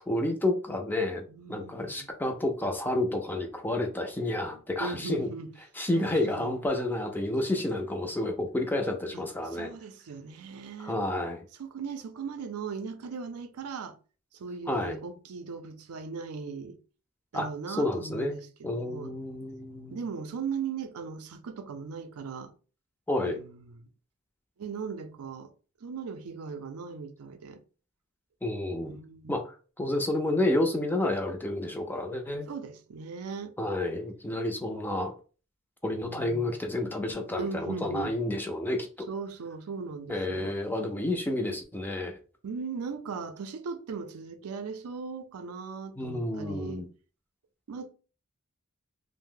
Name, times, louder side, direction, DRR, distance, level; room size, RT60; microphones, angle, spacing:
voice 1, 0.1-1.2 1.5-5.3 5.8-9.7 10.8-11.4 14.7-15.0 17.3-17.5 17.8-18.4 18.6-20.0 23.1-23.4 28.4-28.9 29.3-29.4 29.8-32.5 33.6-35.1 35.8-39.1 40.1-42.2 46.0-46.9, left 1 dB, 10° left, 0.4 m, -30 dB
voice 2, 1.3-2.1 4.8-5.5 6.0-6.5 9.1-11.0 11.6-14.0 14.3-16.8 17.3-19.1 19.9-22.5 23.2-23.9 24.6-25.5 25.8-27.6 28.8-29.4 32.5-33.5 36.1-36.6 37.4-38.1 39.1-40.5 42.4-46.9 47.7-47.9, right 5 dB, 85° right, 0.5 m, -38 dB
2.6 x 2.0 x 3.6 m
head